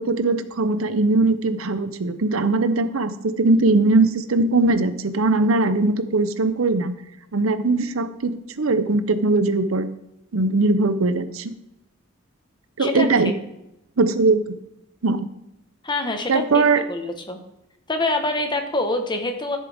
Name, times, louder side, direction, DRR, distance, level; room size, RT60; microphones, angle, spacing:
voice 1, 0.0-6.9 7.3-9.9 10.3-11.5 12.8-13.3 14.0-14.6 15.0-15.3 16.3-16.8, right 3 dB, 85° right, 12 dB, 0.8 m, -20 dB
voice 2, 15.8-16.6 16.9-17.4 17.9-19.6, left 2 dB, 20° left, 5 dB, 1.3 m, -25 dB
13.5 x 7.6 x 3.6 m, 0.86 s
head